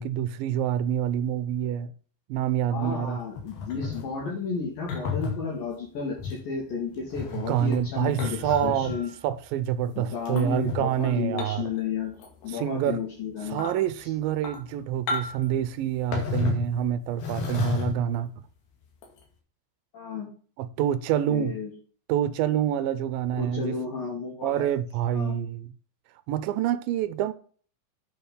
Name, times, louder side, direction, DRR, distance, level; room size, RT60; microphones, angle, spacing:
voice 1, 0.0-1.9 2.3-3.2 7.4-9.0 9.2-11.6 12.5-13.0 13.5-18.3 20.6-21.5 22.1-23.8 24.4-25.7 26.3-27.3, right 10 dB, 80° right, 2.3 m, -27 dB
voice 2, 2.7-9.1 10.0-12.1 12.4-13.7 14.0-14.1 19.9-20.3 21.3-21.7 23.4-24.7 25.1-25.4, left 5 dB, 70° left, 3.9 m, -32 dB
sound 1, 3.4-4.1 4.9-5.4 6.2-6.4 7.0-9.1 10.3-10.8 11.4-11.8 12.1-12.5 12.9-13.0 13.5-13.8 14.3-14.7 15.1-15.5 16.1-16.7 17.2-18.1 19.0-19.2, left 4 dB, 90° left, 4.2 m, -31 dB
9.0 x 6.0 x 5.4 m
omnidirectional pair, 4.4 m